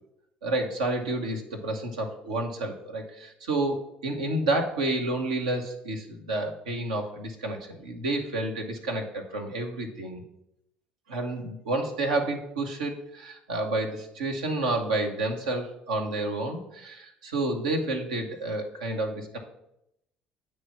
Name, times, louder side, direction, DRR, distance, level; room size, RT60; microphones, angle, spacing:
voice 1, 0.4-10.2 11.1-19.4, right 2 dB, 85° right, 3 dB, 1.0 m, -30 dB
8.5 x 3.2 x 5.7 m, 0.80 s
hypercardioid pair, 65°, 4 cm